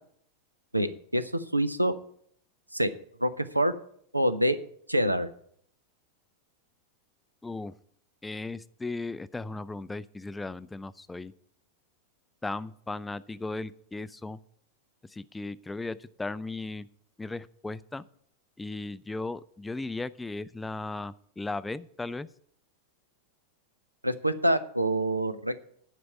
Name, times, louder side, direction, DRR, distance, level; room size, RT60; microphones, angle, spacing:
voice 1, 0.7-1.9 2.7-2.9 3.2-3.7 4.1-4.6 4.9-5.3 24.0-25.7, right 1 dB, 85° right, 13 dB, 0.7 m, -26 dB
voice 2, 7.4-7.7 8.2-11.3 12.4-14.4 15.1-16.9 17.2-18.0 18.6-22.3, left 3 dB, 10° left, 16 dB, 0.4 m, -36 dB
11.0 x 5.1 x 8.4 m, 0.64 s
figure-of-eight pair, 90°, 0 cm